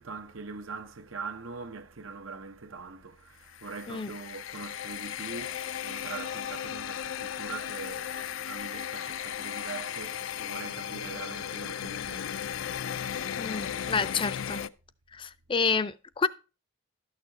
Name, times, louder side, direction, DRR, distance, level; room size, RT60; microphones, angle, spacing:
voice 1, 0.0-13.5, right 4 dB, 85° right, 1.1 m, -42 dB
sound 1, 3.4-14.7, left 9 dB, 90° left, 0.5 m, -36 dB
voice 2, 13.4-14.6 15.1-16.3, left 5 dB, 25° left, 0.5 m, -29 dB
12.0 x 6.6 x 4.1 m
head